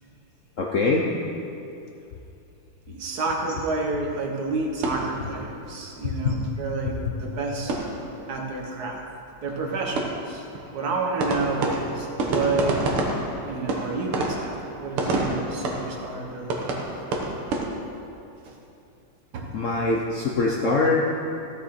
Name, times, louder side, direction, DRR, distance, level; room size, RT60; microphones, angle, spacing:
voice 1, 0.6-1.1 6.0-6.4 19.5-21.2, left 3 dB, 75° left, -2 dB, 0.7 m, -23 dB
voice 2, 2.9-7.7 8.3-9.1 9.4-10.4 10.7-12.9 13.4-16.7 18.4-18.6 19.3-19.5, right 3 dB, 50° right, 0 dB, 1.6 m, -29 dB
sound 1, 4.6-6.0 6.3-6.4 6.7-6.8 7.1-8.5 8.8-8.9 9.2-17.7, right 2 dB, 85° right, 2.0 m, -30 dB
15.0 x 6.5 x 4.3 m, 2.7 s
omnidirectional pair, 2.3 m